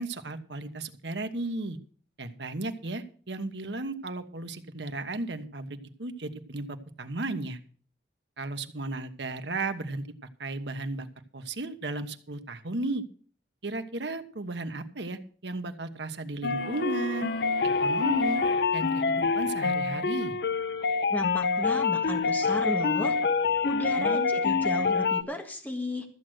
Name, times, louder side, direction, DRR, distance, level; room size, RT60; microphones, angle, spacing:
voice 1, 0.0-1.8 2.2-7.6 8.4-10.0 10.4-13.0 13.6-17.3 17.8-18.4 18.7-20.4 24.0-24.3, right 2 dB, 80° right, 8 dB, 1.2 m, -35 dB
sound 1, 16.4-25.2, left 4 dB, 70° left, 0.6 m, -26 dB
sound 2, 16.5-19.5, left 1 dB, 50° left, 5.8 m, -43 dB
voice 2, 21.1-23.2 23.6-26.1, left 1 dB, 10° left, 4 dB, 1.8 m, -34 dB
14.0 x 7.7 x 6.3 m, 0.43 s
head